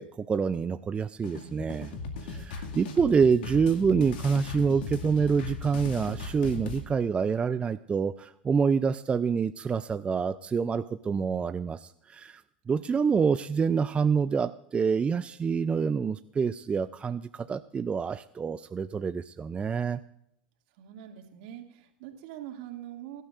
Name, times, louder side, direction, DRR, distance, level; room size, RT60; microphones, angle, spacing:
voice 1, 0.0-1.9 2.2-12.4 12.7-20.0, right 6 dB, 20° right, 12 dB, 0.4 m, -27 dB
sound 1, 1.2-6.8, left 4 dB, 70° left, 2.2 m, -37 dB
voice 2, 20.7-23.2, right 11 dB, 65° right, 2 dB, 2.4 m, -44 dB
23.5 x 12.0 x 2.5 m, 0.76 s
hypercardioid pair, 90°, 5 cm